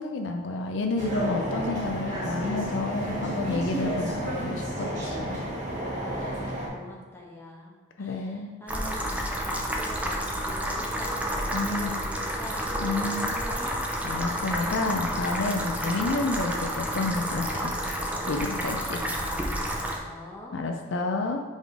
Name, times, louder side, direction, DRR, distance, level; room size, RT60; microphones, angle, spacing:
voice 1, 0.0-5.4 8.0-8.5 11.5-11.9 12.8-13.3 14.0-17.7 18.3-19.0 20.5-21.4, left 3 dB, 65° left, 3 dB, 0.5 m, -30 dB
sound 1, 1.0-6.7, right 1 dB, 40° right, 1.4 m, -31 dB
voice 2, 6.0-13.8 18.9-19.1 19.9-20.6, left 1 dB, 10° left, -3 dB, 1.0 m, -44 dB
sound 2, 8.7-20.0, equal, 5° right, 0.6 m, -30 dB
5.3 x 3.9 x 4.8 m, 1.4 s
head